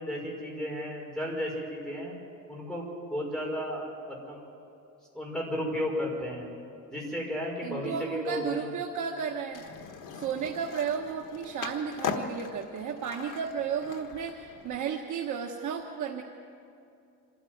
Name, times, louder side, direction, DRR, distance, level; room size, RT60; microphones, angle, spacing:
voice 1, 0.0-2.1 2.5-2.8 3.1-4.5 5.1-6.5 6.9-8.7, equal, ahead, -2 dB, 5.4 m, -34 dB
voice 2, 7.6-9.6 10.1-16.2, right 7 dB, 70° right, 1 dB, 1.4 m, -33 dB
Skateboard, 9.5-14.8, left 6 dB, 75° left, 1.5 m, -39 dB
26.5 x 14.0 x 9.4 m, 2.5 s
cardioid pair, 160°, 31 cm